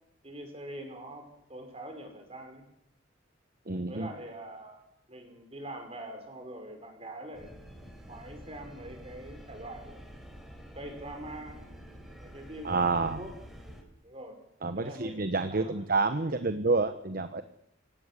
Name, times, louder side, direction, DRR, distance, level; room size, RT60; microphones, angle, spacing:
voice 1, 0.2-2.6 3.9-7.5 8.1-10.1 10.7-11.7 12.2-13.3 14.0-14.4 14.8-15.8, right 1 dB, 30° right, 4 dB, 5.6 m, -44 dB
voice 2, 3.7-4.1 12.6-13.2 14.6-17.4, right 3 dB, 50° right, 9 dB, 1.1 m, -28 dB
sound 1, 7.3-13.8, equal, ahead, 3.7 m, -48 dB
26.0 x 17.5 x 8.3 m, 0.77 s
head